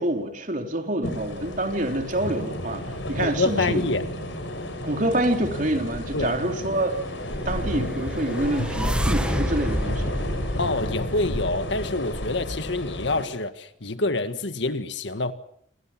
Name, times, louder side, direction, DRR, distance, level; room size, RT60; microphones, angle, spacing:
voice 1, 0.0-3.9 4.8-6.9 7.5-10.2, right 1 dB, 45° right, 3.8 m, -27 dB
sound 1, 1.0-13.3, left 1 dB, 90° left, 5.6 m, -32 dB
sound 2, 2.1-11.4, equal, 25° right, 7.8 m, -46 dB
voice 2, 3.2-4.1 6.1-6.4 10.6-15.3, left 2 dB, 70° left, 1.7 m, -26 dB
sound 3, 7.8-11.9, equal, 5° right, 1.3 m, -29 dB
29.5 x 27.0 x 6.1 m
head